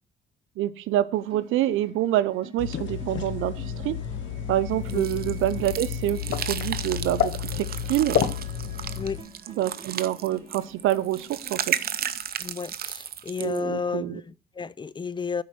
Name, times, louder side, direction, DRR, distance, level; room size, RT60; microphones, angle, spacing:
voice 1, 0.6-4.0 4.5-8.3 9.5-11.8 13.4-14.2, right 13 dB, 90° right, 0.7 m, -27 dB
sound 1, 1.1-12.3, right 3 dB, 30° right, 2.7 m, -48 dB
sound 2, 2.6-9.2, left 9 dB, 70° left, 0.9 m, -30 dB
sound 3, 4.9-13.6, right 9 dB, 50° right, 0.7 m, -34 dB
voice 2, 12.4-15.4, left 5 dB, 25° left, 0.4 m, -32 dB
10.5 x 4.7 x 6.0 m
cardioid pair, 90°, 20 cm